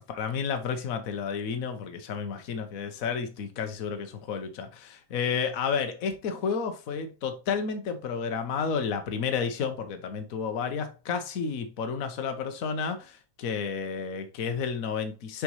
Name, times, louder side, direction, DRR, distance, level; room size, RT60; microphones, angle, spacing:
voice 1, 0.1-15.4, left 6 dB, 45° left, 1.3 m, -31 dB
6.7 x 5.2 x 3.1 m
omnidirectional pair, 2.4 m